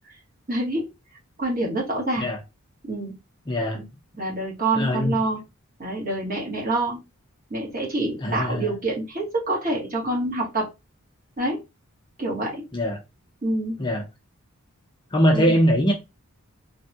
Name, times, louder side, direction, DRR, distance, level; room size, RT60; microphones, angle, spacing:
voice 1, 0.5-0.9 1.4-2.3 2.8-3.1 3.7-3.8 4.2-5.4 5.8-7.0 7.5-10.7 11.4-11.6 12.2-12.6 13.4-13.8 15.3-15.6, right 2 dB, 40° right, 1.4 m, -26 dB
voice 2, 3.5-3.8 4.7-5.2 8.2-8.7 12.7-13.0 13.8-14.0 15.1-15.9, equal, 20° left, 0.5 m, -21 dB
3.3 x 2.1 x 2.7 m
head